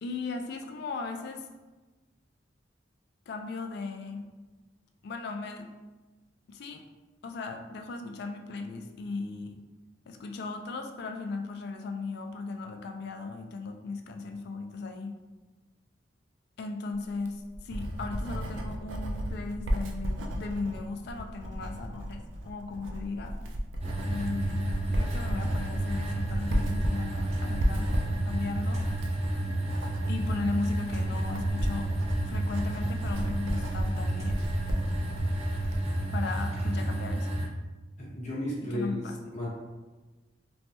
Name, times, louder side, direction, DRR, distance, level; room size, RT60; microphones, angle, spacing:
voice 1, 0.0-1.5 3.3-4.3 5.0-5.7 6.5-6.8 7.2-9.6 10.1-15.2 16.6-23.4 24.0-28.8 30.1-31.9 32.2-34.4 36.1-37.3 38.7-39.3, left 3 dB, 60° left, 5 dB, 0.3 m, -37 dB
Writing, 17.1-35.9, equal, 85° right, 0.4 m, -34 dB
sound 1, 23.8-37.5, right 1 dB, 35° right, 0.6 m, -31 dB
voice 2, 38.0-39.0 39.3-39.5, left 1 dB, 40° left, -7 dB, 1.0 m, -33 dB
3.1 x 2.2 x 2.8 m, 1.2 s
head